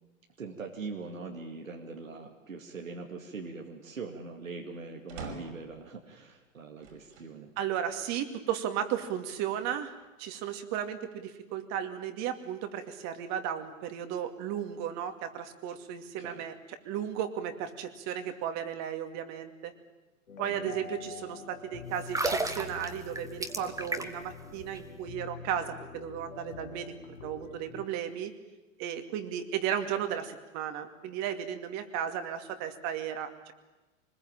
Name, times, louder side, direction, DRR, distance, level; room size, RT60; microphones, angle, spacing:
voice 1, 0.4-7.5 16.2-16.4 20.4-20.7, right 4 dB, 85° right, 1 dB, 2.4 m, -42 dB
sound 1, 5.1-5.8 6.8-7.4 8.0-8.1 9.3-10.1, right 3 dB, 65° right, 5.7 m, -45 dB
voice 2, 7.6-9.9 10.2-19.7 20.4-28.3 28.8-33.5, right 9 dB, 45° right, 7 dB, 2.5 m, -35 dB
sound 2, 20.3-27.9, left 6 dB, 85° left, 2.3 m, -46 dB
sound 3, 22.0-24.3 24.6-24.8, right 2 dB, 10° right, 1.8 m, -32 dB
24.5 x 20.5 x 9.0 m, 1.1 s
hypercardioid pair, 100°, 39 cm